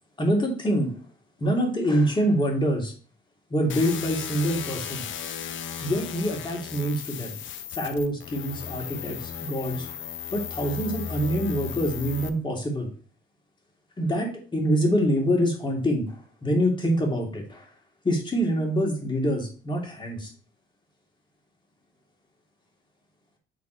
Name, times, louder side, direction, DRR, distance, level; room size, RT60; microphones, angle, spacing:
voice 1, 0.2-1.0 1.4-2.9 3.5-5.0 5.8-7.3 7.7-10.0 10.3-12.9 14.0-17.7 18.0-20.3, equal, 25° left, 0 dB, 2.4 m, -25 dB
sound 1, 3.7-12.3, left 8 dB, 70° left, 0.8 m, -35 dB
7.7 x 3.5 x 4.6 m, 0.40 s
cardioid pair, 90°, 20 cm